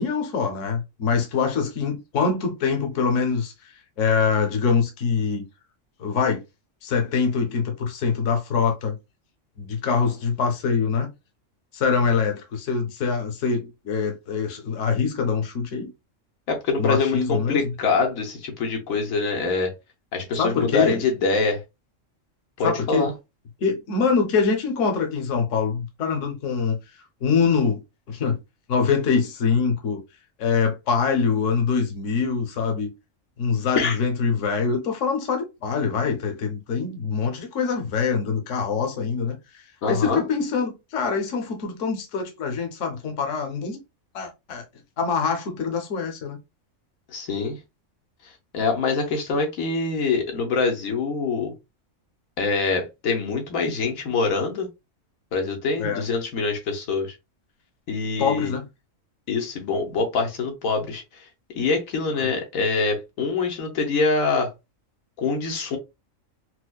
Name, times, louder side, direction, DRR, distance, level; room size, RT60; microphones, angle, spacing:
voice 1, 0.0-5.4 6.0-6.4 6.8-9.0 9.6-11.1 11.7-15.9 16.8-17.8 20.4-21.0 22.6-23.1 23.6-26.8 27.2-27.8 28.1-28.4 28.7-30.0 30.4-32.9 33.4-43.8 44.1-44.6 45.0-46.4 55.8-56.0 58.2-58.7 62.2-62.3, left 5 dB, 70° left, 1.1 m, -24 dB
voice 2, 16.5-19.7 20.1-21.6 22.6-23.1 33.8-34.0 39.8-40.2 47.1-47.6 48.5-51.5 52.4-54.7 55.3-57.1 57.9-58.5 59.3-61.0 61.6-64.5 65.2-65.8, left 4 dB, 90° left, 1.3 m, -24 dB
4.5 x 2.1 x 2.3 m
omnidirectional pair, 1.4 m